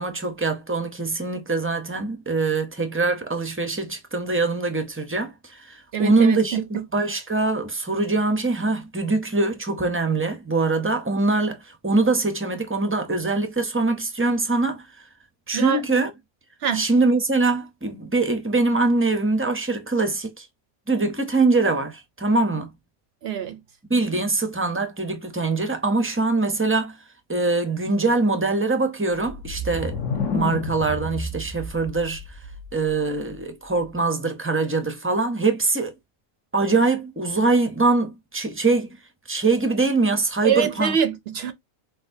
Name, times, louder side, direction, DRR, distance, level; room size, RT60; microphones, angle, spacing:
voice 1, 0.0-11.6 11.8-14.8 15.5-16.1 16.7-20.4 20.9-22.7 23.9-27.0 27.3-30.0 30.3-32.2 32.7-35.9 36.5-39.0 39.3-40.9, right 3 dB, 15° right, 0.4 m, -23 dB
voice 2, 5.9-6.8 15.5-15.8 16.6-16.8 23.2-23.6 40.4-41.5, right 8 dB, 65° right, 0.7 m, -24 dB
sound 1, 29.1-33.0, left 3 dB, 65° left, 1.3 m, -30 dB
6.1 x 2.4 x 2.6 m
omnidirectional pair, 1.4 m